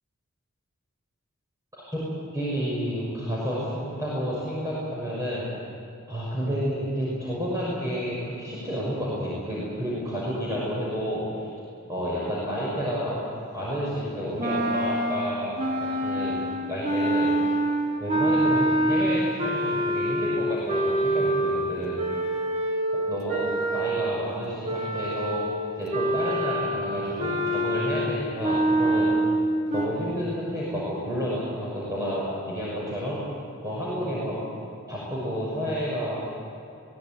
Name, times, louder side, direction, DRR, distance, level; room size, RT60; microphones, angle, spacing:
voice 1, 2.3-5.4 6.1-11.5 11.9-13.2 13.5-15.5 15.8-17.3 18.0-22.0 23.1-25.4 25.8-29.1 29.7-33.2 33.6-34.4 34.9-36.2, equal, 15° right, -7 dB, 6.3 m, -30 dB
sound 1, 14.4-24.2 24.6-29.9, right 1 dB, 30° right, 2.7 m, -26 dB
22.5 x 18.0 x 9.3 m, 2.7 s
head